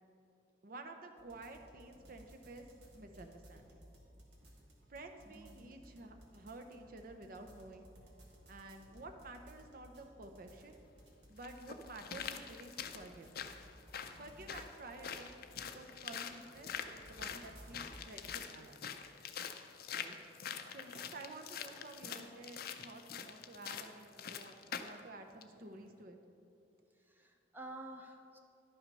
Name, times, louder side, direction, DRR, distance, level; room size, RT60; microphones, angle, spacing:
voice 1, 0.6-2.7 2.9-3.8 4.9-7.9 8.5-10.8 11.3-13.3 14.2-18.8 19.9-20.2 20.7-26.2, right 2 dB, 50° right, 5 dB, 0.7 m, -51 dB
sound 1, 1.2-18.2, equal, 70° right, 1.6 m, -59 dB
sound 2, 10.6-10.7 11.4-25.0 25.4-25.5, left 7 dB, 55° left, 0.5 m, -45 dB
voice 2, 27.0-28.4, right 2 dB, 10° right, 3 dB, 0.5 m, -50 dB
11.0 x 5.8 x 5.3 m, 2.7 s
head